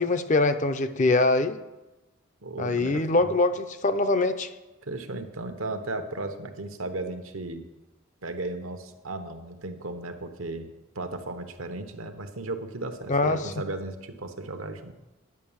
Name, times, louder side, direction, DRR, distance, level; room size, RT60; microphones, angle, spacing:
voice 1, 0.0-1.6 2.6-4.5 13.1-13.4, left 2 dB, 35° left, 9 dB, 0.5 m, -23 dB
voice 2, 2.4-3.4 4.8-7.6 8.2-10.7 10.9-14.9, right 2 dB, 80° right, 7 dB, 1.0 m, -35 dB
10.5 x 5.8 x 7.2 m, 1.0 s
head